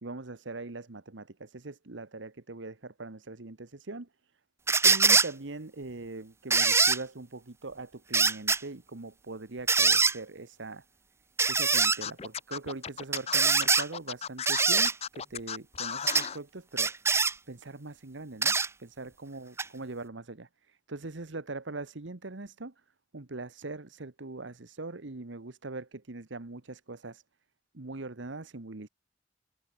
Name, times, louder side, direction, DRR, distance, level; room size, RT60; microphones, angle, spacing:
voice 1, 0.0-4.1 4.8-10.8 11.5-16.9 17.5-22.7 23.1-27.2 27.7-28.9, right 3 dB, 80° right, 1.3 m, -41 dB
sound 1, 4.7-5.3 6.5-7.0 8.1-8.6 9.7-10.1 11.4-12.0 13.1-13.9 14.5-14.9 16.1-16.3 16.8-17.3 18.4-18.7 19.6-19.7, right 4 dB, 15° right, 0.6 m, -23 dB
Scratching (performance technique), 12.0-16.4, left 7 dB, 35° left, 0.7 m, -36 dB
head